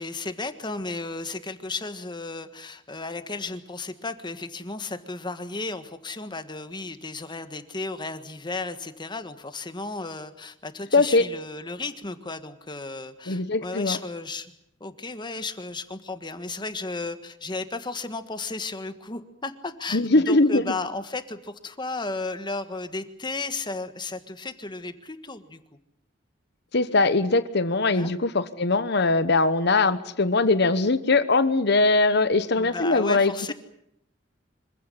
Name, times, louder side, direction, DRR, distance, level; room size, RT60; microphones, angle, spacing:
voice 1, 0.0-14.5 14.8-25.6 27.9-28.1 32.5-33.5, left 3 dB, 25° left, 10 dB, 1.5 m, -34 dB
voice 2, 10.9-11.3 13.3-14.0 19.9-20.7 26.7-33.5, left 3 dB, 60° left, 13 dB, 1.2 m, -21 dB
25.5 x 16.0 x 9.9 m, 0.77 s
head